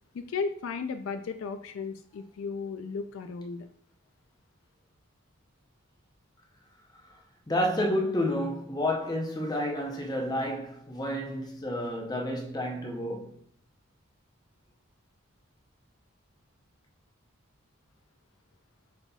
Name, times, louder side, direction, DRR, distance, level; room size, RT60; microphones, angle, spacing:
voice 1, 0.1-3.7, left 5 dB, 70° left, 0.3 m, -35 dB
voice 2, 7.5-13.3, left 1 dB, 20° left, 0.7 m, -30 dB
5.4 x 4.0 x 2.3 m
head